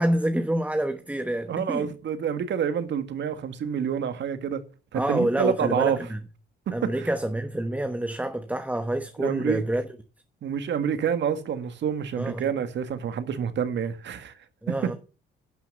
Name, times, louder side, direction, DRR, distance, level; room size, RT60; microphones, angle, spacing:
voice 1, 0.0-1.9 4.9-6.2 6.7-9.8 12.2-12.5 14.6-14.9, right 1 dB, 5° right, 1.1 m, -27 dB
voice 2, 1.5-4.6 4.9-6.0 6.7-7.1 9.2-9.6 10.4-14.3 14.7-14.9, right 8 dB, 65° right, 1.7 m, -28 dB
11.5 x 6.1 x 6.6 m
cardioid pair, 90°, 20 cm